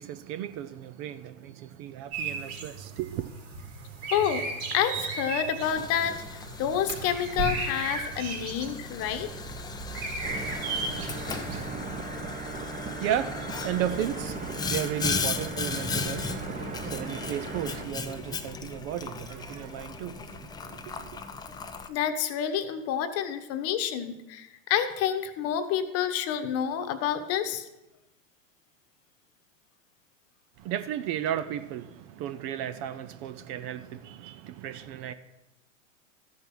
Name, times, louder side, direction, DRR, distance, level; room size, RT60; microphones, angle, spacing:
voice 1, 0.0-3.3 12.8-21.2 30.6-35.1, right 10 dB, 35° right, 0.5 m, -34 dB
sound 1, 2.1-11.7, right 4 dB, 55° right, 3.6 m, -36 dB
voice 2, 4.1-4.4 4.7-9.3 21.9-27.7, left 9 dB, 40° left, 1.1 m, -28 dB
Boiling, 5.6-21.9, left 4 dB, 10° left, 0.5 m, -37 dB
sound 2, 10.2-17.8, right 4 dB, 20° right, 1.2 m, -38 dB
13.5 x 5.4 x 6.0 m
hypercardioid pair, 115°, 39 cm